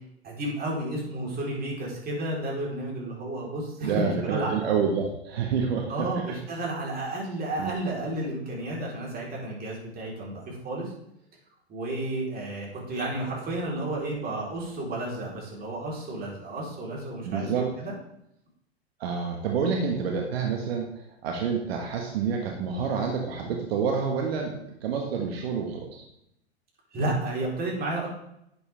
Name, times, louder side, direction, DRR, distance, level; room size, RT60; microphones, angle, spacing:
voice 1, 0.2-4.7 5.9-10.9 11.7-17.9 26.9-28.1, right 1 dB, 30° right, -3 dB, 4.3 m, -32 dB
voice 2, 3.8-6.1 7.6-7.7 17.2-17.7 19.0-20.9 21.2-26.0, right 6 dB, 70° right, 1 dB, 1.8 m, -28 dB
11.5 x 8.0 x 3.6 m, 0.78 s
hypercardioid pair, 105°, 32 cm